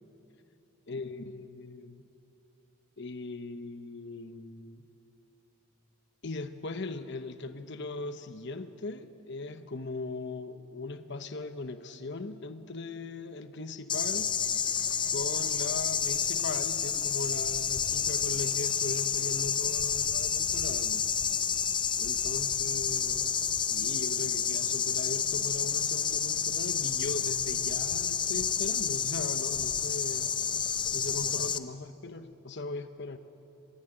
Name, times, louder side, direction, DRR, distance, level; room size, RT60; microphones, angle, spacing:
voice 1, 0.9-2.0 3.0-4.9 6.2-14.4 15.1-21.1 22.0-30.3 30.9-33.2, left 3 dB, 55° left, 9 dB, 1.0 m, -39 dB
sound 1, 13.9-31.6, left 7 dB, 20° left, 0.5 m, -29 dB
sound 2, 14.3-26.3, right 7 dB, 45° right, 2.2 m, -53 dB
26.0 x 15.0 x 10.0 m, 3.0 s
head